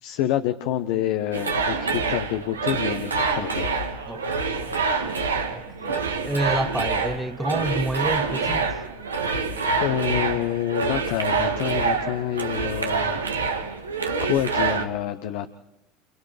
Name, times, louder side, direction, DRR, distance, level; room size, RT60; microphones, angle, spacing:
voice 1, 0.0-3.7 9.8-13.2 14.2-15.5, left 12 dB, 60° left, 1.0 m, -27 dB
sound 1, 1.3-14.9, right 4 dB, 85° right, 1.6 m, -26 dB
voice 2, 5.5-8.8, right 1 dB, 5° right, 0.7 m, -29 dB
30.0 x 29.0 x 3.4 m
figure-of-eight pair, 75°, 0 cm